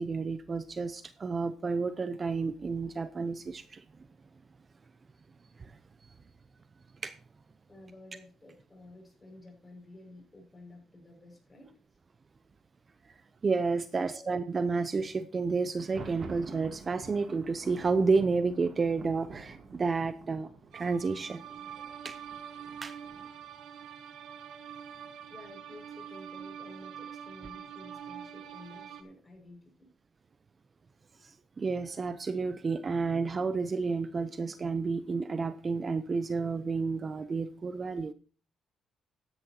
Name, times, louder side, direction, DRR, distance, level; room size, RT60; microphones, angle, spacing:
voice 1, 0.0-3.8 7.0-7.1 13.4-20.5 20.7-21.4 22.0-22.1 22.8-22.9 31.6-38.1, right 4 dB, 35° right, 13 dB, 0.7 m, -30 dB
voice 2, 7.7-11.7 13.9-14.2 25.3-29.9, left 2 dB, 20° left, 1 dB, 6.1 m, -52 dB
Thunder, 15.7-23.5, right 4 dB, 50° right, 2.7 m, -48 dB
sound 1, 20.7-29.0, right 8 dB, 85° right, 1.3 m, -45 dB
14.0 x 10.5 x 2.9 m, 0.38 s
cardioid pair, 90°, 0 cm